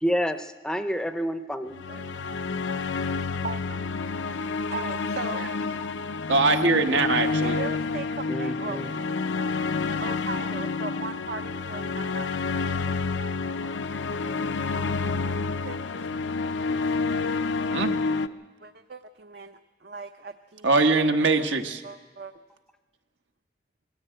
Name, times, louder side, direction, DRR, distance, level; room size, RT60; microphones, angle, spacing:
voice 1, 0.0-1.8 8.3-8.9, equal, 5° left, 9 dB, 0.6 m, -28 dB
sound 1, 1.7-18.3, left 4 dB, 75° left, 0.6 m, -29 dB
voice 2, 4.7-5.8 7.4-8.8 10.0-12.3 12.6-12.9 15.6-16.0 17.3-17.7 18.6-20.7 21.4-21.5 21.8-22.3, right 4 dB, 55° right, 7 dB, 0.6 m, -38 dB
voice 3, 6.3-7.6 17.7-17.9 20.6-21.8, right 3 dB, 80° right, 5 dB, 1.4 m, -22 dB
21.5 x 14.5 x 9.0 m, 1.4 s
head